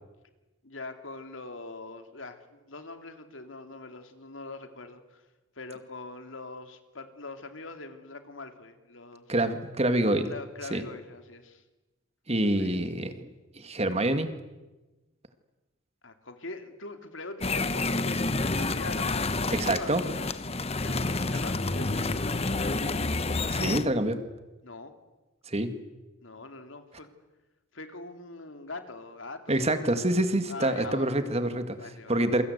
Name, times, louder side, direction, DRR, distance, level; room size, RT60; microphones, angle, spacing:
voice 1, 0.6-5.2 5.6-9.3 10.3-11.6 12.5-12.8 16.0-20.4 20.8-22.9 24.6-24.9 26.2-27.1 27.7-29.9 30.5-31.2 31.8-32.2, left 3 dB, 75° left, 7 dB, 2.8 m, -43 dB
voice 2, 9.3-10.3 10.7-10.8 12.3-13.3 13.6-14.3 19.5-20.0 23.5-24.2 25.5-25.7 29.5-32.4, right 1 dB, 30° right, 9 dB, 2.0 m, -26 dB
sound 1, 17.4-23.8, left 3 dB, 30° left, 1.1 m, -29 dB
28.5 x 23.5 x 8.2 m, 1.1 s
head